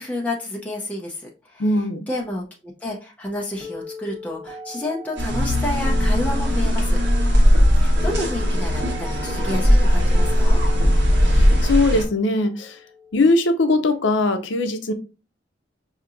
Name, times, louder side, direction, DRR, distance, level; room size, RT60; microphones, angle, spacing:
voice 1, 0.0-1.6 2.1-7.0 7.7-10.6, left 1 dB, 10° left, -3 dB, 0.6 m, -30 dB
voice 2, 1.6-2.1 11.3-12.8 13.1-14.9, left 2 dB, 80° left, 8 dB, 0.6 m, -20 dB
sound 1, 3.6-13.6, left 2 dB, 35° right, 1.0 m, -39 dB
sound 2, 5.2-12.0, equal, 70° right, 1.2 m, -18 dB
5.8 x 2.8 x 2.5 m, 0.32 s
head